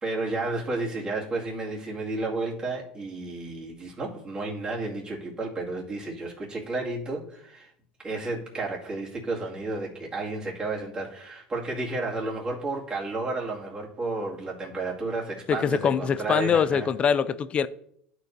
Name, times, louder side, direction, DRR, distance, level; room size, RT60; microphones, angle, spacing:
voice 1, 0.0-7.7 8.0-16.9, right 3 dB, 25° right, 2.1 m, -32 dB
voice 2, 15.5-17.7, left 7 dB, 35° left, 0.4 m, -24 dB
12.0 x 4.6 x 2.6 m
supercardioid pair, 115°, 4 cm